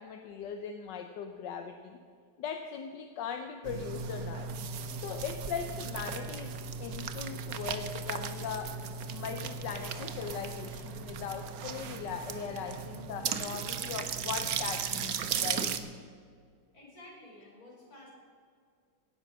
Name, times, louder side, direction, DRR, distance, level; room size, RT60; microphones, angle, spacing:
voice 1, 0.0-2.0 2.4-4.5 5.0-8.8 9.1-15.7, left 7 dB, 85° left, 6 dB, 1.5 m, -39 dB
sound 1, 3.6-15.8, right 6 dB, 60° right, 1.2 m, -36 dB
voice 2, 16.7-18.1, left 1 dB, 55° left, -3 dB, 5.2 m, -52 dB
17.0 x 10.5 x 6.2 m, 2.3 s
omnidirectional pair, 1.8 m